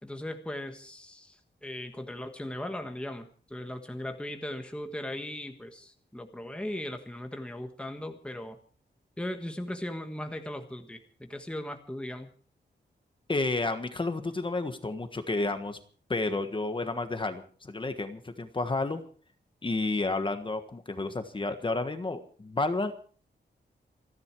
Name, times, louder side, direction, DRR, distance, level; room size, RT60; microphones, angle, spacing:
voice 1, 0.0-8.6 9.2-12.3, left 1 dB, 5° left, 6 dB, 1.4 m, -38 dB
voice 2, 13.3-15.8 16.1-19.0 19.6-22.9, left 2 dB, 25° left, 8 dB, 1.5 m, -31 dB
28.0 x 11.0 x 4.7 m, 0.44 s
wide cardioid pair, 180°, 19 cm